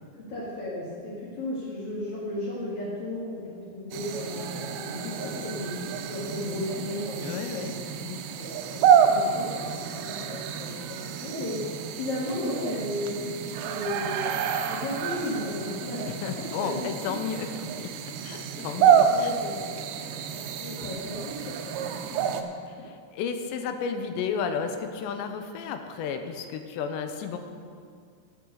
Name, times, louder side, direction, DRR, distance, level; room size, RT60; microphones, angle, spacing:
voice 1, 0.2-7.7 8.4-16.0 16.3-17.2 18.3-19.9 20.3-22.9, left 1 dB, 50° left, -7 dB, 1.7 m, -35 dB
sound 1, 3.9-22.4, right 7 dB, 80° right, 2.7 m, -28 dB
voice 2, 7.2-7.7 8.0-8.3 16.2-19.3 22.8-27.4, left 6 dB, 85° left, 7 dB, 2.9 m, -33 dB
11.5 x 7.7 x 6.7 m, 2.1 s
omnidirectional pair, 5.2 m